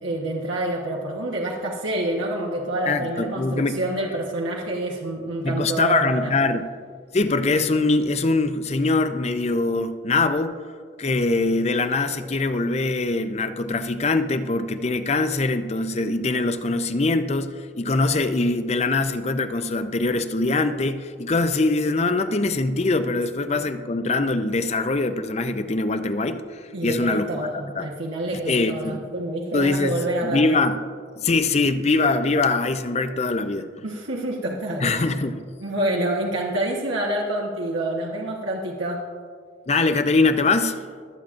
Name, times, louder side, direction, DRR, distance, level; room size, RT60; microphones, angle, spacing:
voice 1, 0.0-6.3 26.7-30.6 33.8-35.1 35.6-39.0, right 1 dB, 90° right, -2 dB, 1.2 m, -27 dB
voice 2, 2.9-3.8 5.4-6.7 7.1-10.6 11.0-27.5 27.8-27.9 28.3-29.0 29.5-30.8 31.2-33.7 34.8-35.4 39.7-40.8, left 3 dB, 35° left, 9 dB, 0.5 m, -23 dB
23.5 x 8.6 x 2.5 m, 2.1 s
head